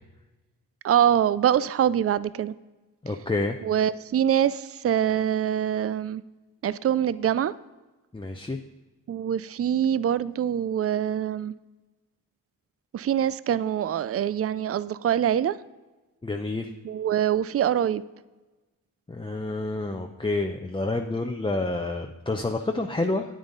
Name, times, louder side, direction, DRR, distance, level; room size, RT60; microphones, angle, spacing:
voice 1, 0.8-2.5 3.6-6.2 6.6-7.5 9.1-11.5 12.9-15.6 16.8-18.0, right 10 dB, 40° right, 17 dB, 0.4 m, -24 dB
voice 2, 3.0-3.6 8.1-8.6 16.2-16.7 19.1-23.3, left 2 dB, 15° left, 3 dB, 0.6 m, -28 dB
9.0 x 8.8 x 3.9 m, 1.2 s
cardioid pair, 60°, 39 cm